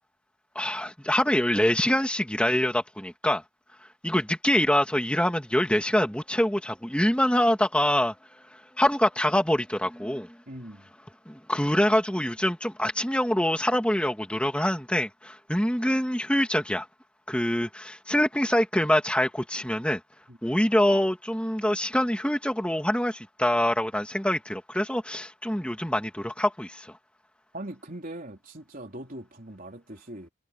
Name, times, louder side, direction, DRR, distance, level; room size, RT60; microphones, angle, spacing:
voice 1, 0.5-3.4 4.0-8.2 8.8-10.4 11.3-16.9 17.3-20.0 20.4-26.9, left 1 dB, 5° left, 2.4 m, -25 dB
voice 2, 10.5-10.9 20.3-20.4 27.5-30.3, right 1 dB, 40° right, 4.0 m, -41 dB
head